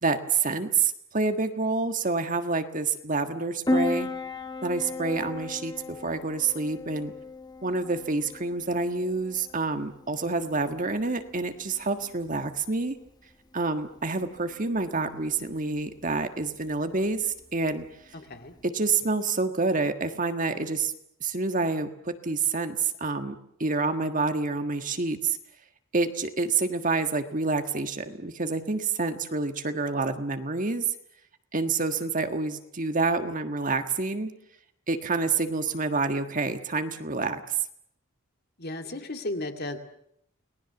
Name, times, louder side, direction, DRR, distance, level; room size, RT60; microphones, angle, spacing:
voice 1, 0.0-4.1 4.6-7.1 7.6-13.0 13.5-17.9 18.6-20.9 21.2-25.4 25.9-30.8 31.5-34.3 34.9-37.6, right 3 dB, 40° right, 8 dB, 1.6 m, -28 dB
Piano, 3.7-18.6, left 2 dB, 20° left, 1.3 m, -37 dB
voice 2, 18.1-18.5 38.6-39.8, left 1 dB, 45° left, 6 dB, 2.4 m, -34 dB
30.0 x 19.5 x 7.1 m, 0.71 s
head